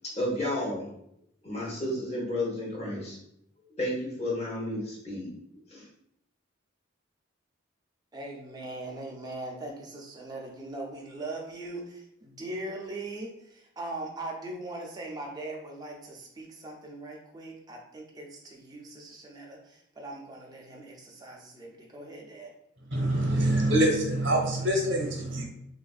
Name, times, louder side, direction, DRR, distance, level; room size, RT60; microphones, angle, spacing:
voice 1, 0.2-0.9 1.4-3.2 3.8-5.3 5.7-5.8, left 1 dB, 30° left, -4 dB, 0.8 m, -32 dB
voice 2, 8.1-22.5, right 2 dB, 20° right, -1 dB, 0.4 m, -40 dB
voice 3, 22.9-25.4, right 1 dB, 60° right, 0 dB, 0.8 m, -25 dB
3.4 x 2.5 x 2.3 m, 0.76 s
head